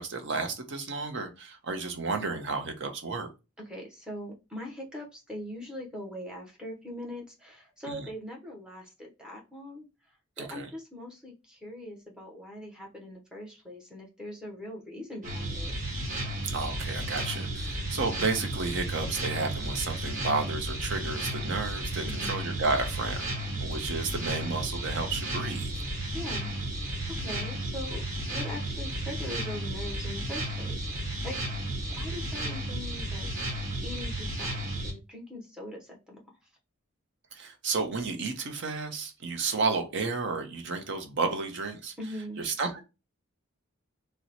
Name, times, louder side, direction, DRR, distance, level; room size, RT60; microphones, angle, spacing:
voice 1, 0.0-3.3 7.9-8.1 10.4-10.7 16.4-23.3 23.6-25.7 37.3-41.9 42.4-42.8, right 4 dB, 55° right, 0.6 m, -32 dB
voice 2, 3.7-9.9 10.4-15.7 22.1-22.4 26.1-26.5 27.1-28.0 28.3-31.4 31.9-36.2 42.0-42.4, left 1 dB, 5° right, 0.7 m, -41 dB
sound 1, 15.2-34.9, right 1 dB, 40° right, 1.3 m, -33 dB
2.9 x 2.0 x 3.9 m
head